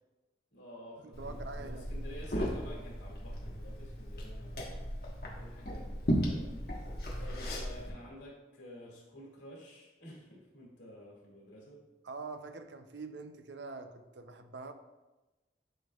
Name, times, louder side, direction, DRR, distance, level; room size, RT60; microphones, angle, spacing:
voice 1, 0.5-4.7 5.4-6.6 7.2-11.8, equal, 85° left, -4 dB, 2.3 m, -51 dB
voice 2, 1.0-1.9 12.0-14.7, right 3 dB, 80° right, 8 dB, 0.6 m, -44 dB
Liquid, 1.1-7.9, equal, 55° left, 1.3 m, -36 dB
11.0 x 4.5 x 2.4 m, 1.1 s
head